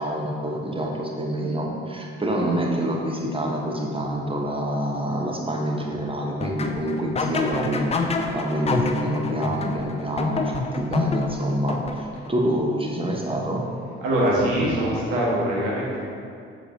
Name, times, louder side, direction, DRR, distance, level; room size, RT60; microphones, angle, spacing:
voice 1, 0.0-13.7, right 1 dB, 15° right, 0 dB, 1.1 m, -26 dB
sound 1, 6.4-12.3, left 4 dB, 20° left, 0.5 m, -28 dB
voice 2, 14.0-16.0, right 1 dB, 65° right, -5 dB, 1.7 m, -23 dB
7.4 x 6.1 x 2.9 m, 2.4 s
figure-of-eight pair, 45°, 32 cm